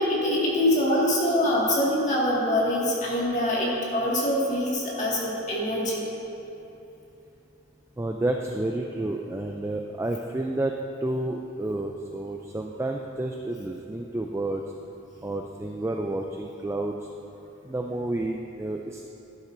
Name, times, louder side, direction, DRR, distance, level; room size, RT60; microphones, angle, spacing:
voice 1, 0.0-6.0, left 1 dB, 35° left, -5 dB, 1.9 m, -24 dB
voice 2, 8.0-14.6 15.2-17.1 17.6-19.0, right 2 dB, 15° right, 2 dB, 0.3 m, -30 dB
11.5 x 11.5 x 2.6 m, 2.9 s
head